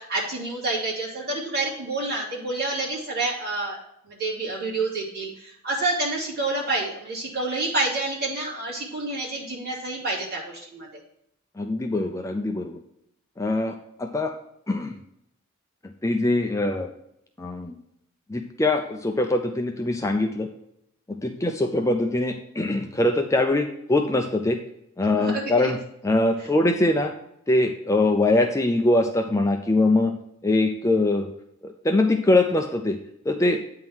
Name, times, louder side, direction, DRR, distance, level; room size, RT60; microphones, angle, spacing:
voice 1, 0.0-3.8 4.0-11.0 25.2-25.7, right 2 dB, 50° right, -5 dB, 2.8 m, -28 dB
voice 2, 11.6-12.8 13.4-14.3 14.7-15.0 16.0-16.9 17.4-17.8 18.3-20.5 21.1-24.6 25.0-25.8 26.0-27.1 27.5-30.2 30.4-31.3 31.6-33.0 33.2-33.6, left 2 dB, 15° left, 4 dB, 0.5 m, -23 dB
8.8 x 3.7 x 6.0 m, 0.75 s
head